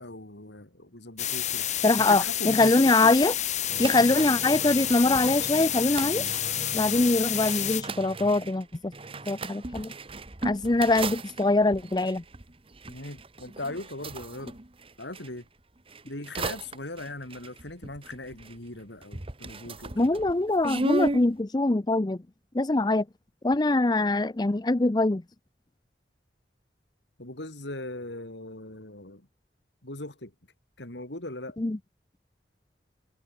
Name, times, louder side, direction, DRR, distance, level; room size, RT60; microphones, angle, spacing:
voice 1, 0.0-1.7 2.1-3.1 12.9-14.6 15.0-15.5 16.0-20.2 27.2-29.3 29.8-30.3 30.8-31.6, left 2 dB, 75° left, 4.4 m, -39 dB
sound 1, 1.2-7.8, left 11 dB, 40° left, 1.7 m, -29 dB
voice 2, 1.8-3.3 3.8-6.2 6.7-8.9 9.3-9.9 10.4-12.2 20.0-22.2 22.5-23.0 23.4-25.2 31.6-31.8, left 2 dB, 25° left, 0.5 m, -23 dB
sound 2, 3.7-15.3 15.9-18.8 19.0-21.3, right 2 dB, 30° right, 1.3 m, -36 dB
head